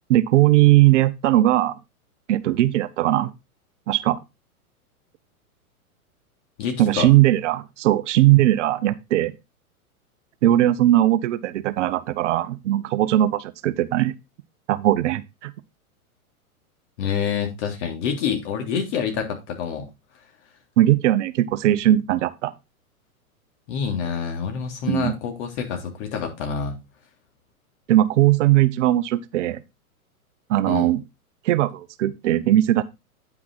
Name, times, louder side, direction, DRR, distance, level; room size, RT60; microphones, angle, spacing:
voice 1, 0.1-1.8 2.3-3.3 3.9-4.2 6.8-9.3 10.4-14.1 14.7-15.5 20.8-22.5 24.9-25.1 27.9-29.6 30.5-31.0 31.4-32.8, right 14 dB, 55° right, 0.8 m, -19 dB
voice 2, 6.6-7.1 17.0-19.9 23.7-26.8 30.7-30.9, left 7 dB, 50° left, 3.4 m, -27 dB
9.5 x 6.0 x 4.0 m
hypercardioid pair, 115°, 44 cm